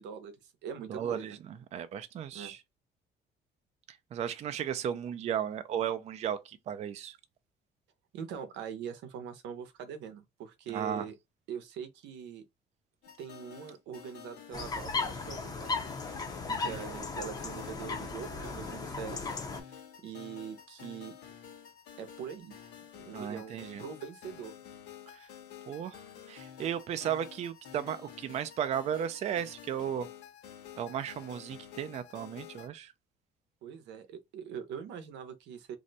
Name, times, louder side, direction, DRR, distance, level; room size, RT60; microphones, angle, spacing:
voice 1, 0.0-1.3 2.3-2.5 8.1-11.1 11.5-12.4 13.2-15.9 16.6-19.3 19.7-21.1 22.0-22.6 23.0-24.5 33.6-35.8, right 7 dB, 90° right, 0.7 m, -43 dB
voice 2, 0.9-1.4 1.7-2.6 3.9-7.2 10.7-11.0 16.5-16.8 23.1-23.8 25.2-25.3 25.7-26.0 26.3-30.1 30.8-32.9, right 9 dB, 40° right, 0.4 m, -35 dB
sound 1, 13.0-32.7, left 9 dB, 70° left, 1.1 m, -50 dB
sound 2, 14.5-19.6, left 4 dB, 20° left, 0.6 m, -36 dB
2.6 x 2.1 x 3.9 m
cardioid pair, 145°, 18 cm